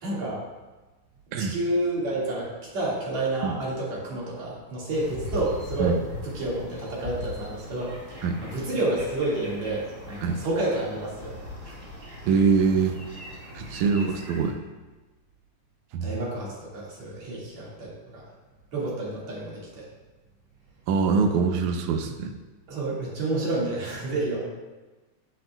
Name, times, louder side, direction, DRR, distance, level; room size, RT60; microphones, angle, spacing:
voice 1, 0.0-0.4 1.4-6.0 6.2-8.0 8.4-11.4 11.6-11.8 16.0-18.2 18.7-19.9 22.7-24.4, right 2 dB, 65° right, -5 dB, 3.3 m, -29 dB
sound 1, 4.9-14.5, left 1 dB, 25° right, 3.2 m, -40 dB
voice 2, 12.3-13.0 13.5-14.6 15.9-16.1 20.9-22.3, right 5 dB, 80° right, 6 dB, 2.1 m, -23 dB
11.0 x 8.1 x 2.3 m, 1.2 s
omnidirectional pair, 3.4 m